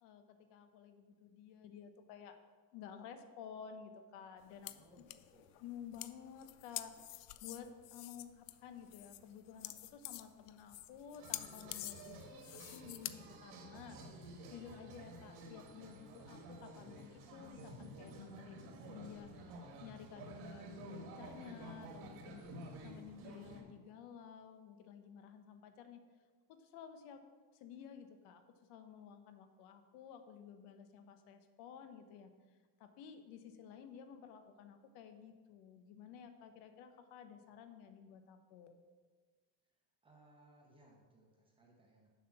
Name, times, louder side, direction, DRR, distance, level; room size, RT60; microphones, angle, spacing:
voice 1, 0.0-2.4 2.7-5.0 5.6-14.0 14.5-20.7 21.0-26.0 26.5-27.3 27.5-28.4 28.7-32.3 32.8-38.8, left 8 dB, 90° left, 8 dB, 1.0 m, -53 dB
sound 1, 4.4-13.1, left 16 dB, 65° left, 0.5 m, -48 dB
voice 2, 4.6-5.6 40.0-42.1, right 2 dB, 15° right, -1 dB, 0.8 m, -66 dB
sound 2, 11.1-23.6, right 1 dB, 75° right, 1.7 m, -51 dB
7.2 x 5.8 x 7.0 m, 1.5 s
cardioid pair, 180°, 37 cm